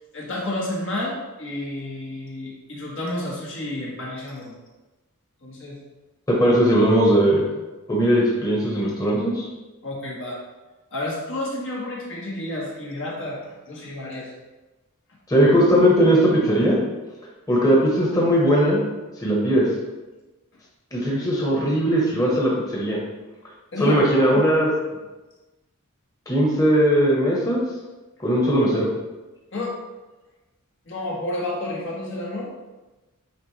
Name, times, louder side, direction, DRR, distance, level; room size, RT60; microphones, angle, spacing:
voice 1, 0.1-4.6 5.4-5.8 9.8-10.4 10.9-14.3 23.7-24.4 29.5-29.8 30.8-32.5, left 1 dB, 60° left, -4 dB, 1.5 m, -30 dB
voice 2, 6.3-7.4 7.9-9.4 15.3-16.8 17.5-18.8 19.2-19.6 20.9-23.0 23.8-24.7 26.3-27.6 28.2-28.9, equal, 15° left, -4 dB, 1.2 m, -19 dB
8.8 x 3.3 x 3.3 m, 1.1 s
head